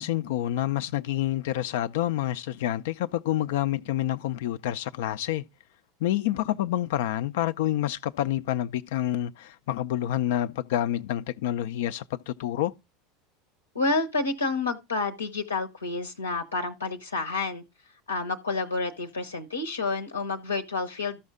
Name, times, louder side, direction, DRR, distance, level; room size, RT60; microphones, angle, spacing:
voice 1, 0.0-5.4 6.0-12.7, left 13 dB, 65° left, 0.4 m, -28 dB
voice 2, 13.7-17.6 18.1-21.2, left 3 dB, 85° left, 0.8 m, -29 dB
13.0 x 5.6 x 3.5 m
figure-of-eight pair, 80°, 0 cm